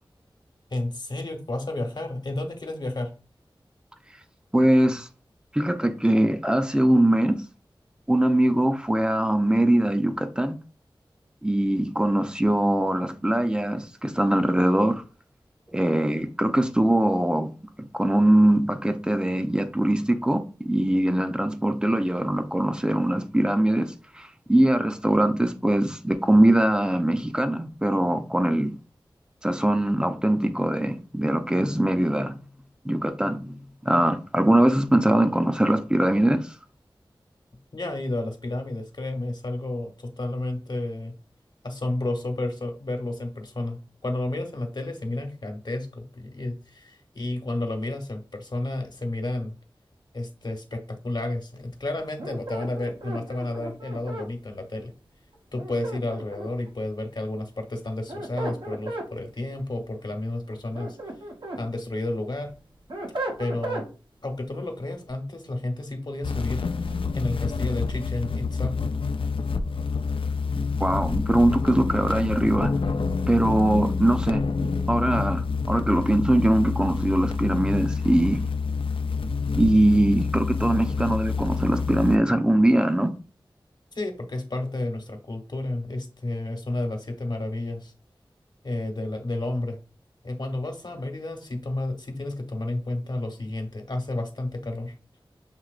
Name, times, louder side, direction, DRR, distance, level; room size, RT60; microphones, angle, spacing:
voice 1, 0.7-3.1 37.7-41.1 41.6-49.5 50.1-54.9 55.5-61.0 61.5-62.5 63.4-63.9 64.2-66.6 67.1-68.8 83.9-87.9 88.6-89.8 90.2-94.9, left 2 dB, 55° left, 1.1 m, -31 dB
voice 2, 4.5-5.1 5.5-7.4 8.1-10.6 11.4-15.0 15.7-17.5 17.8-28.7 29.4-32.4 32.8-36.5 70.8-72.7 73.3-78.4 79.5-83.1, right 1 dB, 10° right, 0.6 m, -22 dB
sound 1, 52.2-54.3 55.6-56.7 57.9-59.1 60.5-61.6 62.1-63.9, right 1 dB, 60° right, 1.0 m, -35 dB
sound 2, 66.2-82.2, left 4 dB, 75° left, 0.4 m, -27 dB
7.3 x 2.8 x 2.5 m
wide cardioid pair, 45°, 9 cm